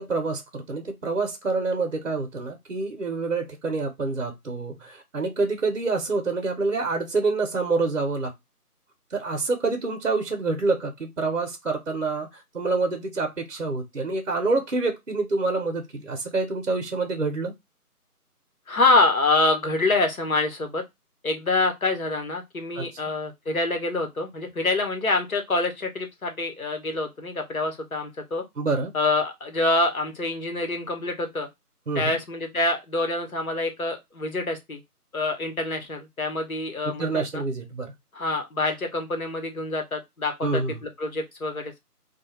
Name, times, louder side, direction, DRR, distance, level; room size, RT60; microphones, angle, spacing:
voice 1, 0.0-8.3 9.1-17.5 22.7-22.9 28.6-28.9 31.9-32.2 36.8-37.9 40.4-40.8, right 3 dB, 55° right, 0.7 m, -27 dB
voice 2, 18.7-20.8 21.2-28.4 28.9-31.5 31.9-34.8 35.1-37.4 38.1-41.8, left 2 dB, 65° left, 0.9 m, -26 dB
2.3 x 2.2 x 3.0 m
figure-of-eight pair, 170°, 47 cm